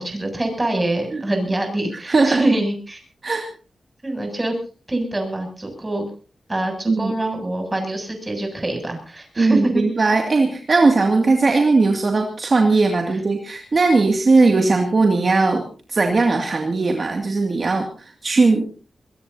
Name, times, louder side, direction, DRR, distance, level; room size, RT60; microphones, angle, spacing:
voice 1, 0.0-3.0 4.0-4.6 4.9-6.1 6.5-9.8 11.5-11.6 13.1-13.2, right 1 dB, 20° right, 3 dB, 7.7 m, -24 dB
voice 2, 2.1-2.4 3.2-3.5 6.9-7.1 9.4-15.6 15.9-18.6, right 3 dB, 50° right, 3 dB, 2.3 m, -18 dB
22.5 x 22.0 x 2.8 m, 0.38 s
wide cardioid pair, 85°, 0 cm